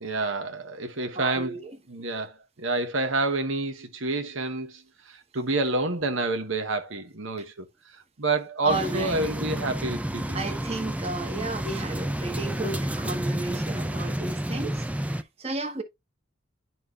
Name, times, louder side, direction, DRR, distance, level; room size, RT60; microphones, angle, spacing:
voice 1, 0.0-10.4, right 2 dB, 75° right, 1.0 m, -29 dB
voice 2, 1.1-1.7 8.6-9.2 10.3-15.8, right 2 dB, 30° right, 1.2 m, -33 dB
sound 1, 8.7-15.2, right 1 dB, 5° right, 0.4 m, -30 dB
11.0 x 4.4 x 2.4 m
head